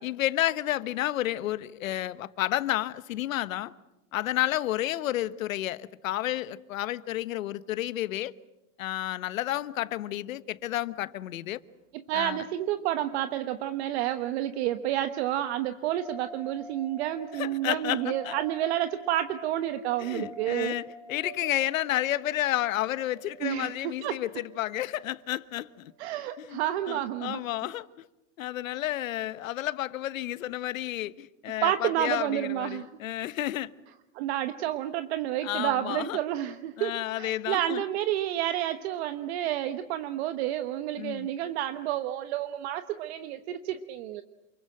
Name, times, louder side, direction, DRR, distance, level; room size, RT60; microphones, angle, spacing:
voice 1, 0.0-3.7 4.1-8.3 8.8-11.6 12.1-12.4 17.4-18.4 20.0-25.9 26.4-26.6 26.9-28.0 28.4-33.7 35.4-36.2 36.8-37.8 40.9-41.3, left 14 dB, 85° left, 1.3 m, -31 dB
voice 2, 11.9-20.8 23.4-24.2 26.0-27.4 31.6-32.9 34.1-44.2, right 12 dB, 55° right, 1.2 m, -30 dB
sound 1, 15.9-26.1, right 1 dB, 80° right, 6.2 m, -47 dB
28.5 x 22.0 x 7.8 m
supercardioid pair, 160°, 40 cm